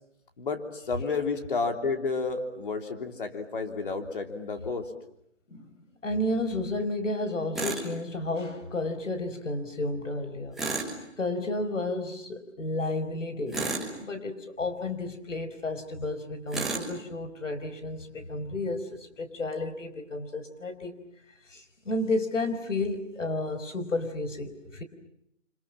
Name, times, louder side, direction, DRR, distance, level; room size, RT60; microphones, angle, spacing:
voice 1, 0.4-4.9, left 4 dB, 45° left, 5 dB, 3.3 m, -31 dB
voice 2, 6.0-10.6 11.2-21.0 21.5-24.8, left 2 dB, 80° left, 10 dB, 5.2 m, -32 dB
Tools, 7.6-7.9 10.6-11.0 13.5-14.0 16.5-16.9, right 3 dB, ahead, 1.3 m, -31 dB
29.5 x 26.5 x 7.5 m, 0.76 s
hypercardioid pair, 170°, 37 cm